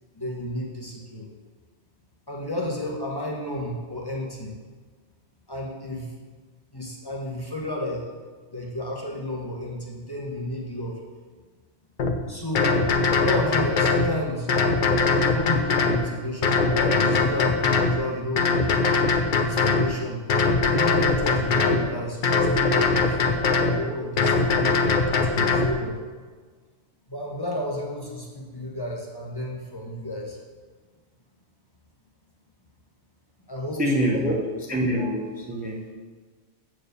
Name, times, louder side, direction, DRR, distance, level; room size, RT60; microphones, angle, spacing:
voice 1, 0.1-1.3 2.3-4.6 5.5-6.1 6.7-8.1 8.5-11.0 12.3-12.8 13.2-14.5 15.0-18.8 19.3-20.2 20.6-23.2 23.6-24.6 25.2-26.0 27.1-30.4 33.5-34.3, left 1 dB, 20° left, -3 dB, 1.1 m, -32 dB
sound 1, 12.0-12.1 12.6-14.1 14.5-16.0 16.4-18.0 18.4-19.9 20.3-21.8 22.2-23.8 24.2-25.7, left 4 dB, 50° left, 0.7 m, -21 dB
voice 2, 33.8-34.3 34.7-35.7, equal, 10° right, -2 dB, 0.8 m, -25 dB
7.4 x 4.7 x 6.7 m, 1.4 s
omnidirectional pair, 1.2 m